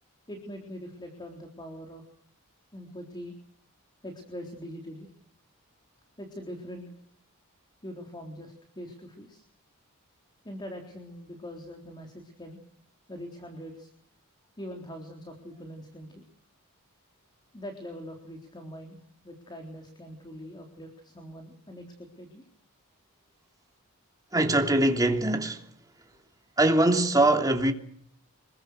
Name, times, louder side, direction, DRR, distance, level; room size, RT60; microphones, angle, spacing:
voice 1, 0.3-2.0 2.7-3.4 4.0-5.1 6.2-6.9 7.8-9.4 10.4-12.6 13.1-13.9 14.6-16.2 17.5-22.4, equal, 20° left, 3.9 m, -42 dB
voice 2, 24.3-25.6 26.6-27.7, right 1 dB, 15° right, 3.0 m, -22 dB
26.5 x 22.5 x 6.6 m
head